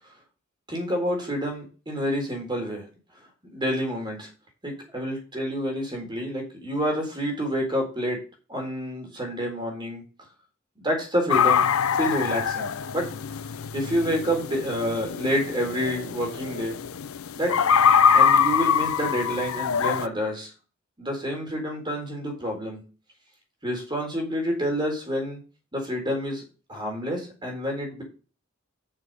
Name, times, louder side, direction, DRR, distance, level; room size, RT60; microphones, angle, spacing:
voice 1, 0.7-2.8 3.5-4.3 4.6-8.2 8.5-10.0 10.8-13.0 13.7-16.8 17.4-17.5 18.1-20.5 21.0-22.8 23.6-25.4 25.7-26.4 26.7-28.0, equal, 25° right, 1 dB, 3.8 m, -28 dB
sound 1, 11.3-20.1, left 7 dB, 90° left, 0.5 m, -23 dB
7.9 x 6.4 x 5.2 m, 0.36 s
head